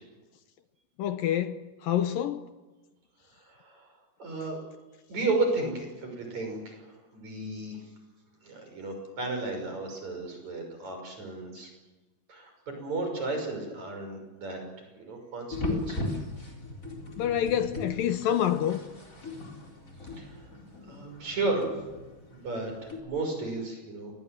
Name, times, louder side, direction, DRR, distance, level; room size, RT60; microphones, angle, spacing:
voice 1, 1.0-2.5 17.2-18.8, left 10 dB, 75° left, 2.2 m, -27 dB
voice 2, 3.5-3.9 4.2-4.6 5.1-7.8 8.4-11.7 12.3-12.5 12.8-16.1 20.1-20.5 20.9-21.7 22.3-24.1, right 3 dB, 40° right, 7.0 m, -33 dB
sound 1, 15.5-23.0, left 2 dB, 20° left, 4.1 m, -38 dB
26.0 x 21.0 x 7.9 m
omnidirectional pair, 5.0 m